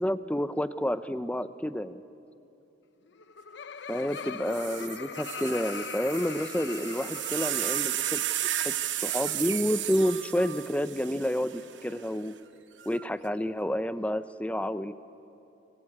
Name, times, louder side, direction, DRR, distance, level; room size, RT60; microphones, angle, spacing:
voice 1, 0.0-2.0 3.9-8.2 8.6-12.4 12.9-14.9, equal, 5° left, 12 dB, 0.5 m, -30 dB
Laughter, 3.1-8.3, left 6 dB, 70° left, 0.7 m, -41 dB
sound 1, 4.1-4.2 4.5-11.9 12.8-13.3, right 12 dB, 80° right, 1.1 m, -33 dB
25.0 x 23.0 x 8.7 m, 2.9 s
head